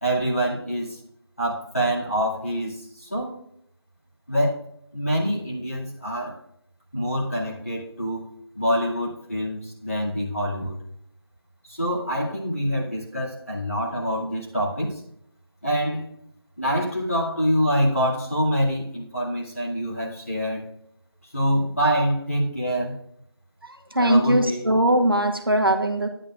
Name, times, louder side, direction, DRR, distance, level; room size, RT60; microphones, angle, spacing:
voice 1, 0.0-1.0 1.4-3.3 4.3-4.6 4.9-6.4 6.9-8.3 8.5-10.8 11.7-15.0 15.6-16.1 16.6-20.7 21.3-23.0 24.0-24.7, equal, 30° left, -6 dB, 2.3 m, -25 dB
voice 2, 23.9-26.1, right 1 dB, 55° right, 4 dB, 1.2 m, -20 dB
11.0 x 10.0 x 2.5 m, 0.72 s
figure-of-eight pair, 180°, 14 cm